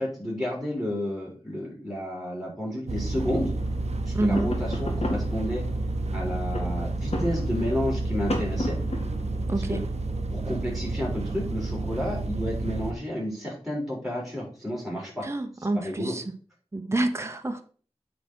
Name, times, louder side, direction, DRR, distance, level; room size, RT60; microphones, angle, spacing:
voice 1, 0.0-3.5 4.1-5.6 6.1-8.8 9.5-9.8 10.3-15.3 15.7-16.1, equal, ahead, -2 dB, 3.7 m, -31 dB
sound 1, 2.9-12.9, right 2 dB, 90° right, 0.8 m, -30 dB
sound 2, 3.6-12.2, left 1 dB, 75° left, 1.9 m, -37 dB
voice 2, 4.1-4.5 9.5-9.8 15.2-16.2 16.7-17.6, right 2 dB, 25° right, 6 dB, 0.9 m, -28 dB
8.3 x 3.9 x 6.2 m, 0.42 s
wide cardioid pair, 55°, 11 cm